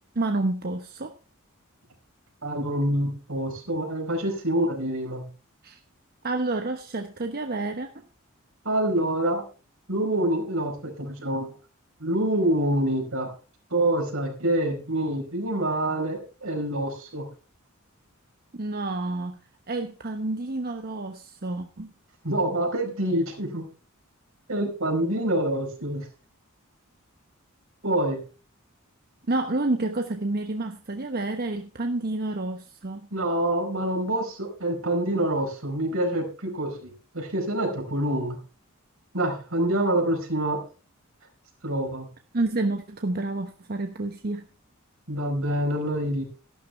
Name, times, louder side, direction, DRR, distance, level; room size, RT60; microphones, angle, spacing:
voice 1, 0.1-1.1 5.6-5.8 6.2-8.0 18.5-19.4 19.7-21.9 29.3-33.1 42.3-44.5, right 2 dB, 50° right, 7 dB, 1.0 m, -29 dB
voice 2, 2.4-5.3 8.6-9.4 9.9-11.5 12.0-13.3 13.7-17.2 22.2-23.7 24.5-26.1 27.8-28.2 33.1-38.4 39.1-40.6 41.6-42.1 45.1-46.2, right 1 dB, 70° right, 3 dB, 4.9 m, -26 dB
13.0 x 12.0 x 3.3 m, 0.35 s
head